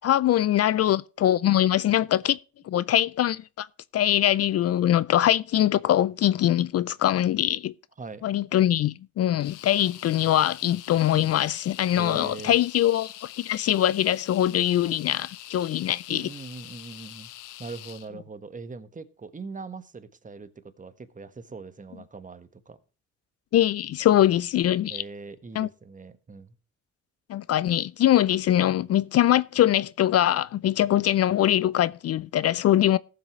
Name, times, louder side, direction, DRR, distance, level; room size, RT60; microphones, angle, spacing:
voice 1, 0.0-2.4 2.6-3.7 3.9-7.7 8.2-16.3 23.5-25.0 25.6-25.7 27.3-33.0, left 12 dB, 55° left, 0.4 m, -22 dB
voice 2, 8.0-8.3 11.9-12.6 16.1-17.3 17.6-22.8 24.9-26.5, right 4 dB, 25° right, 1.4 m, -41 dB
sound 1, 9.4-18.1, left 14 dB, 90° left, 0.9 m, -44 dB
18.0 x 7.5 x 3.1 m
cardioid pair, 90°, 30 cm